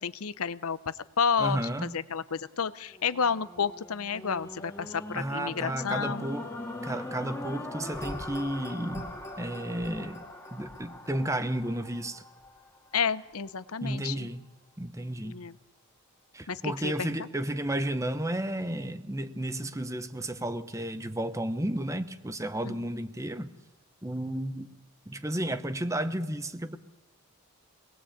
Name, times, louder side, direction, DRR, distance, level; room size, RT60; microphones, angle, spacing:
voice 1, 0.0-6.3 12.9-14.3 15.2-15.6 16.5-17.3 22.6-22.8, left 6 dB, 85° left, 15 dB, 0.8 m, -31 dB
voice 2, 1.4-2.0 5.1-6.5 6.8-9.1 9.4-10.2 10.5-12.2 13.8-14.4 14.8-15.4 16.3-23.5 24.0-24.7 25.1-26.8, right 1 dB, 15° right, 11 dB, 0.9 m, -32 dB
sound 1, 2.9-13.2 13.8-13.9, left 1 dB, 10° left, 2.0 m, -41 dB
24.5 x 19.5 x 8.7 m, 1.0 s
head